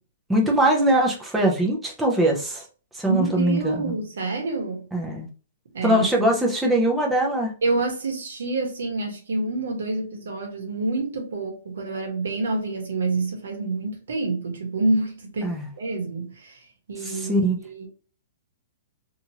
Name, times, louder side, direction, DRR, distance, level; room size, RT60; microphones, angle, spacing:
voice 1, 0.3-2.6 2.9-3.9 4.9-5.3 5.8-7.5 15.4-15.7 17.1-17.6, right 1 dB, 5° right, 0.5 m, -22 dB
voice 2, 3.1-4.9 5.7-6.3 7.6-17.9, right 2 dB, 85° right, 1.1 m, -27 dB
2.9 x 2.4 x 2.8 m
hypercardioid pair, 175°, 0 cm